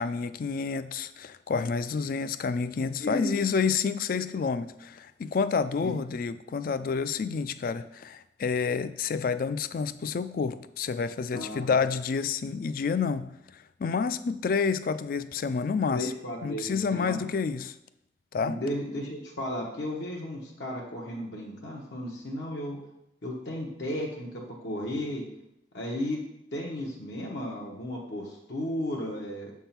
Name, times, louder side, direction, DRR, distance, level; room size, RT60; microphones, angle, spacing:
voice 1, 0.0-16.1 16.4-17.7 18.3-18.6, left 5 dB, 50° left, 13 dB, 0.3 m, -29 dB
voice 2, 3.0-3.3 5.8-5.9 11.3-11.7 15.9-17.2 18.4-22.8 23.2-25.2 25.7-26.2 26.5-29.5, left 1 dB, 75° left, -2 dB, 1.1 m, -34 dB
6.9 x 3.6 x 5.8 m, 0.81 s
head